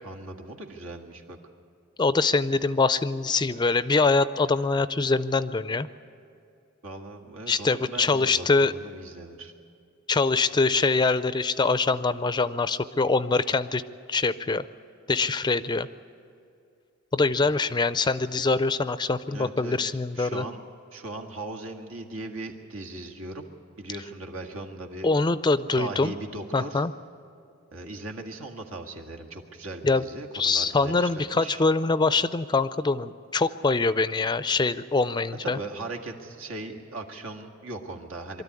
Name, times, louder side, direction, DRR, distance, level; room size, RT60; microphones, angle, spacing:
voice 1, 0.0-1.4 6.8-9.5 17.4-17.5 19.3-20.6 20.9-23.5 23.8-25.1 25.7-26.8 27.7-31.6 35.4-38.4, right 2 dB, 85° right, 2 dB, 1.9 m, -38 dB
voice 2, 2.0-5.9 7.5-8.7 10.1-13.8 14.1-14.6 15.1-15.9 17.1-20.4 25.0-26.1 26.5-26.9 29.8-30.0 30.3-35.6, left 3 dB, 20° left, 14 dB, 0.4 m, -24 dB
23.5 x 13.0 x 9.7 m, 2.5 s
head